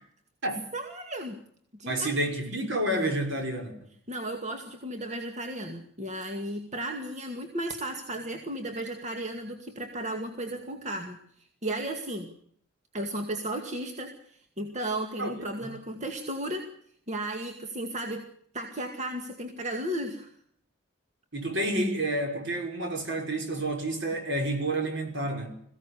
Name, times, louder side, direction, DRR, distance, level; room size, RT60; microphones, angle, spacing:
voice 1, 0.7-1.4 1.8-2.2 4.1-11.2 11.6-12.3 12.9-16.7 17.1-18.3 18.5-20.3, right 1 dB, 35° right, 4 dB, 2.1 m, -34 dB
voice 2, 1.9-3.7 15.2-16.0 21.3-25.6, right 1 dB, 60° right, 4 dB, 5.8 m, -30 dB
22.0 x 16.5 x 8.3 m, 0.65 s
head